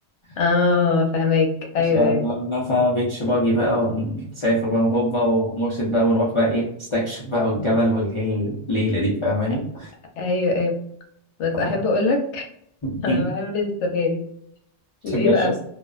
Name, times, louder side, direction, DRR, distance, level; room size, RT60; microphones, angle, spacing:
voice 1, 0.4-1.5 1.7-2.2 10.2-10.7 11.4-12.4 13.0-14.2 15.0-15.5, left 3 dB, 85° left, 2 dB, 1.0 m, -21 dB
voice 2, 1.9-9.9 11.6-11.8 12.8-13.3 15.1-15.5, equal, 35° left, -7 dB, 0.5 m, -22 dB
2.5 x 2.1 x 2.3 m, 0.71 s
omnidirectional pair, 1.2 m